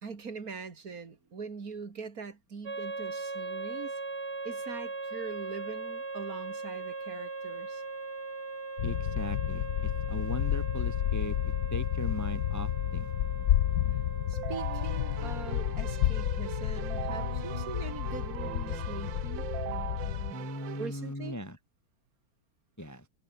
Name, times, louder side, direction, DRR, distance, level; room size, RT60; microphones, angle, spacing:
voice 1, 0.0-4.0 4.4-7.8 14.3-19.5 20.8-21.4, right 5 dB, 40° right, 2.8 m, -42 dB
sound 1, 2.7-19.0, right 3 dB, 85° right, 6.6 m, -40 dB
sound 2, 8.8-20.3, left 12 dB, 65° left, 1.0 m, -31 dB
voice 2, 8.8-13.1 20.3-21.6 22.8-23.0, equal, 10° left, 1.6 m, -39 dB
Keyboard (musical), 14.3-20.9, right 13 dB, 70° right, 1.5 m, -40 dB
omnidirectional pair, 2.3 m